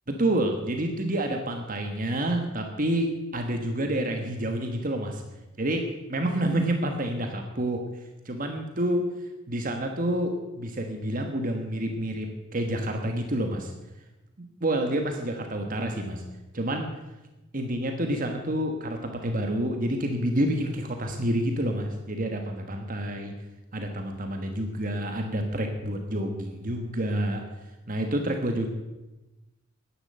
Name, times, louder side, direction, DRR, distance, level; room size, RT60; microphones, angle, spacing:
voice 1, 0.1-5.2 5.6-7.8 8.2-9.0 9.5-13.7 14.6-16.2 16.5-16.9 17.5-23.3 23.7-27.4 27.9-28.7, right 1 dB, 45° right, 4 dB, 1.4 m, -28 dB
11.0 x 10.5 x 7.7 m, 1.1 s
head